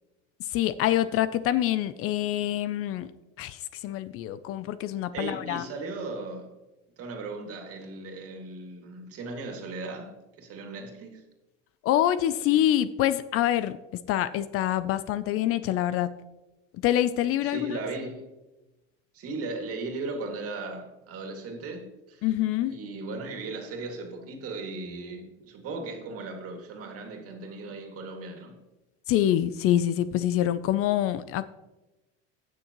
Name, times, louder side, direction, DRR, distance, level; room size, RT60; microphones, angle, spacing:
voice 1, 0.4-3.1 3.4-5.6 11.8-13.8 14.1-16.1 16.8-17.8 22.2-22.8 29.1-31.4, left 12 dB, 45° left, 0.5 m, -26 dB
voice 2, 5.1-6.5 7.0-11.3 17.4-18.3 19.1-22.3 22.7-28.6, right 3 dB, 45° right, 2.3 m, -37 dB
18.0 x 6.5 x 3.0 m
supercardioid pair, 120°, 32 cm